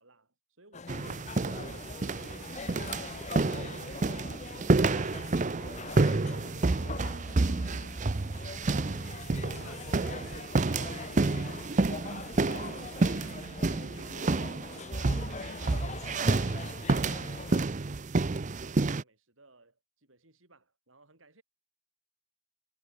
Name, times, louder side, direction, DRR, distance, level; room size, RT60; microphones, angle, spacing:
voice 1, 0.0-1.3 16.7-21.4, right 2 dB, 85° right, 7.8 m, -61 dB
sound 1, 0.7-17.6, left 4 dB, 35° left, 0.7 m, -43 dB
sound 2, 0.9-19.0, right 3 dB, 40° right, 0.6 m, -29 dB
voice 2, 7.1-8.7 9.3-14.3 14.7-16.3, left 3 dB, 85° left, 6.4 m, -59 dB
head